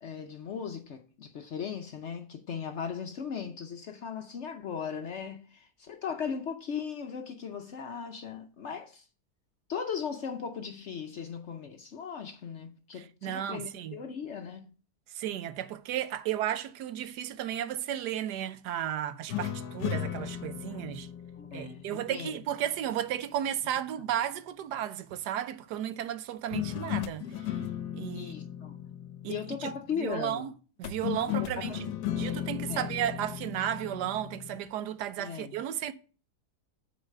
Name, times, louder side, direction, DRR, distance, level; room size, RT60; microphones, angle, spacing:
voice 1, 0.0-9.0 9.7-14.7 20.7-20.8 21.3-22.3 28.1-28.8 29.3-30.5 31.3-31.8 32.7-32.9 35.2-35.6, left 7 dB, 60° left, 0.8 m, -38 dB
voice 2, 12.9-14.0 15.1-21.1 21.5-27.6 27.9-28.4 29.2-30.5 30.8-31.9 32.2-35.9, right 11 dB, 85° right, 1.2 m, -34 dB
sound 1, 19.3-22.7 26.5-29.9 30.8-34.7, left 11 dB, 85° left, 1.2 m, -36 dB
8.0 x 4.1 x 6.4 m
omnidirectional pair, 1.8 m